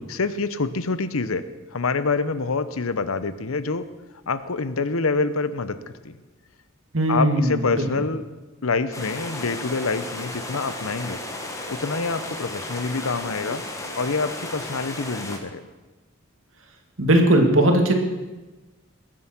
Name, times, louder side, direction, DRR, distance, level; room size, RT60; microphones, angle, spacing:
voice 1, 0.1-1.4 1.7-3.9 4.3-6.2 7.1-8.2 8.6-11.2 11.7-13.6 14.0-15.6, left 4 dB, 85° left, 13 dB, 0.9 m, -26 dB
voice 2, 6.9-7.9 17.0-17.9, right 1 dB, 70° right, 3 dB, 2.2 m, -18 dB
sound 1, 8.9-15.4, left 1 dB, 15° left, 1.4 m, -34 dB
21.0 x 7.7 x 6.0 m, 1.2 s
head